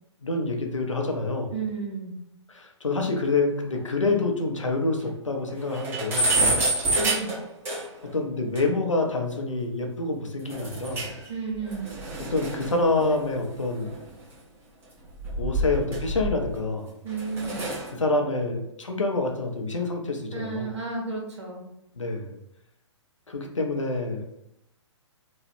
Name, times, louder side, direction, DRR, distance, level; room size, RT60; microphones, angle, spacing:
voice 1, 0.2-1.5 2.5-6.4 8.1-11.1 12.3-14.0 15.4-16.9 18.0-20.7 22.0-22.4 23.3-24.2, left 3 dB, 80° left, 2 dB, 0.7 m, -27 dB
voice 2, 1.5-2.2 6.9-7.3 11.3-11.9 17.0-17.7 20.3-21.6, right 4 dB, 65° right, -2 dB, 1.2 m, -32 dB
sound 1, 3.7-3.8 4.2-4.3 4.6-4.7 5.1-5.2 5.5-8.1 8.6-8.7 10.5-11.3 11.5-14.2 15.0-16.6 17.1-17.9, right 1 dB, 15° right, 0.9 m, -28 dB
3.0 x 2.3 x 3.2 m, 0.80 s
figure-of-eight pair, 125°, 16 cm